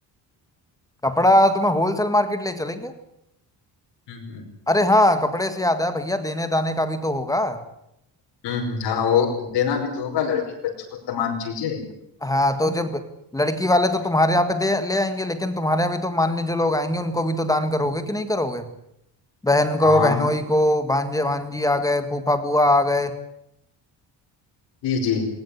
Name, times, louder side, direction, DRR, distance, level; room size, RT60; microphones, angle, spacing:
voice 1, 1.0-2.9 4.7-7.6 12.2-13.0 13.3-18.7 19.4-23.2, left 1 dB, 10° left, 9 dB, 1.7 m, -21 dB
voice 2, 4.1-4.4 8.4-11.8 19.8-20.2 24.8-25.3, left 7 dB, 75° left, 0 dB, 5.6 m, -24 dB
20.5 x 19.5 x 10.0 m, 0.78 s
cardioid pair, 180°, 43 cm